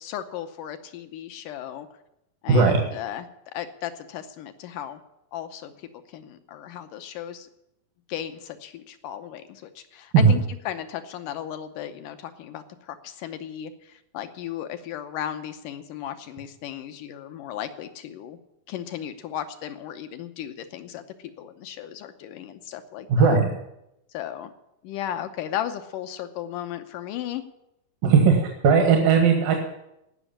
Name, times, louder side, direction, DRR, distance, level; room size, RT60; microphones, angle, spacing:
voice 1, 0.0-1.9 2.4-3.3 3.5-5.0 5.3-5.7 6.1-7.5 8.1-10.4 10.7-18.4 18.7-21.0 21.4-23.4 24.1-24.5 24.8-27.4, left 10 dB, 75° left, 8 dB, 2.3 m, -35 dB
voice 2, 2.5-2.8 10.1-10.3 23.1-23.5 28.0-29.6, right 5 dB, 75° right, 2 dB, 3.3 m, -17 dB
17.5 x 6.3 x 8.7 m, 0.84 s
omnidirectional pair, 4.1 m